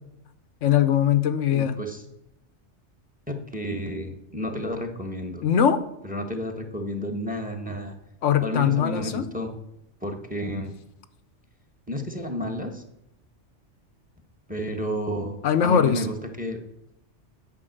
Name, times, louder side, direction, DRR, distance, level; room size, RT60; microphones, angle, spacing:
voice 1, 0.6-1.7 5.4-5.8 8.2-9.3 15.4-16.0, left 9 dB, 90° left, 11 dB, 1.1 m, -21 dB
voice 2, 1.5-2.0 3.3-5.4 6.0-7.9 8.4-9.6 10.0-10.7 11.9-12.8 14.5-16.6, equal, 5° right, 6 dB, 1.2 m, -31 dB
9.7 x 5.1 x 7.8 m, 0.81 s
omnidirectional pair, 1.2 m